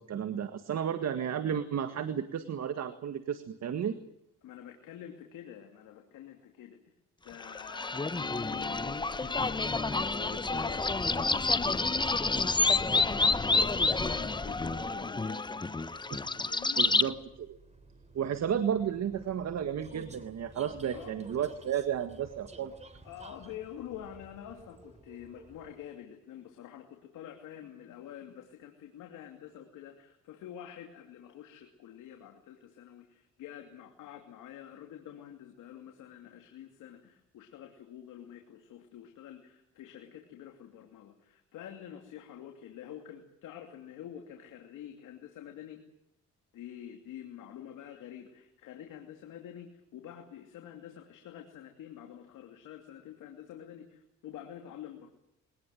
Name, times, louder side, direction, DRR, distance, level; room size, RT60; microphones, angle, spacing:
voice 1, 0.0-4.0 16.1-16.2 16.8-17.6 18.1-22.8, right 8 dB, 60° right, 9 dB, 1.8 m, -33 dB
voice 2, 4.4-6.8 7.2-12.7 13.0-15.4 16.5-16.9 20.9-21.2 23.0-45.8 46.5-55.1, left 10 dB, 90° left, 3 dB, 2.8 m, -47 dB
sound 1, 7.4-17.1, left 3 dB, 15° left, 0.9 m, -29 dB
Vehicle, 15.2-26.0, right 2 dB, 20° right, 3.3 m, -54 dB
23.5 x 19.0 x 9.2 m, 0.79 s
cardioid pair, 90°, 30 cm